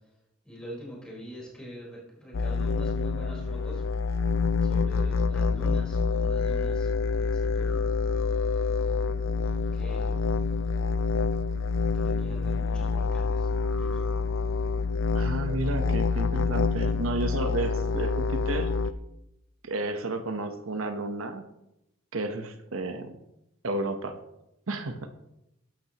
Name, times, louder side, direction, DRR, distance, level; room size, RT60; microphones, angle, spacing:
voice 1, 0.4-3.8 4.6-7.8 9.7-10.2 11.9-14.1, equal, 5° left, -5 dB, 4.3 m, -44 dB
sound 1, 2.3-18.9, left 4 dB, 65° left, 0.5 m, -27 dB
voice 2, 15.1-18.8 19.6-21.4 22.1-23.1 23.6-24.2 24.7-25.1, right 2 dB, 85° right, 8 dB, 1.0 m, -32 dB
12.5 x 12.0 x 3.0 m, 0.86 s
head